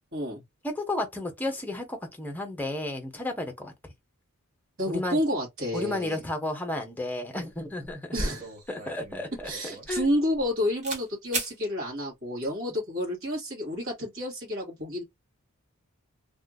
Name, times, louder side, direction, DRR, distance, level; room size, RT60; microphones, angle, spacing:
voice 1, 0.1-0.4 4.8-6.2 8.1-8.5 9.4-15.0, left 1 dB, 60° right, 2.2 m, -30 dB
voice 2, 0.7-3.7 4.9-5.2 5.7-8.2 8.7-10.1, left 2 dB, 10° left, 0.8 m, -33 dB
sound 1, 7.6-7.7 7.8-10.5 10.8-11.0 11.3-11.5, right 2 dB, 35° right, 1.2 m, -35 dB
3.4 x 2.7 x 2.2 m
head